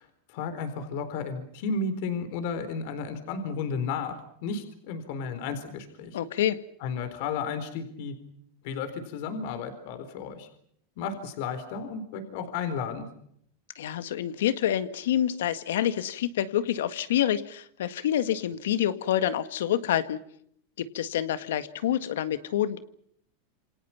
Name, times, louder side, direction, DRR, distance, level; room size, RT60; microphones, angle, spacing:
voice 1, 0.0-6.2 6.8-8.1 8.6-10.5 11.0-13.1, left 5 dB, 50° left, 10 dB, 4.0 m, -33 dB
voice 2, 6.1-6.6 13.8-20.2 20.8-22.8, left 11 dB, 80° left, 12 dB, 1.8 m, -27 dB
28.0 x 27.0 x 5.8 m, 0.69 s
supercardioid pair, 170°, 0 cm